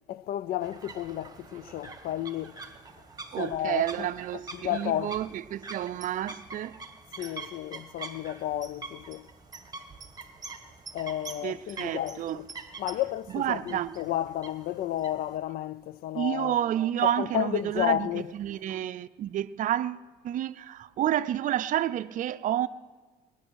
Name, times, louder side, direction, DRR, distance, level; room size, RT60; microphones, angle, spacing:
voice 1, 0.1-2.6 3.4-4.1 4.5-5.2 7.2-9.3 10.9-12.5 12.8-16.6 17.0-18.3, left 12 dB, 65° left, 0.5 m, -32 dB
sound 1, 0.6-15.4, right 4 dB, 20° right, 1.4 m, -45 dB
voice 2, 3.3-6.8 11.4-12.4 13.3-13.9 16.1-18.1 18.4-22.7, right 11 dB, 50° right, 0.5 m, -30 dB
20.5 x 9.8 x 6.3 m
cardioid pair, 110°, 17 cm